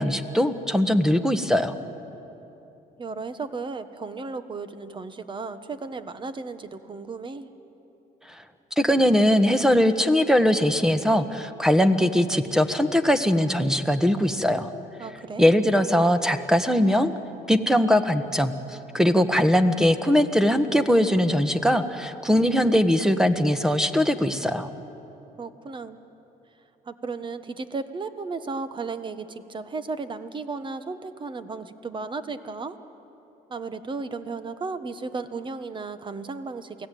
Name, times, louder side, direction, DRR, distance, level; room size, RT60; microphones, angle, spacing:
voice 1, 0.0-1.7 8.8-14.7 15.4-17.1 17.5-18.6 18.9-24.7, equal, 5° right, 9 dB, 1.3 m, -21 dB
voice 2, 3.0-7.5 15.0-15.5 25.4-26.1 26.8-32.8 33.5-36.9, right 4 dB, 30° right, 11 dB, 1.3 m, -34 dB
28.5 x 18.0 x 9.3 m, 3.0 s
cardioid pair, 110°, 17 cm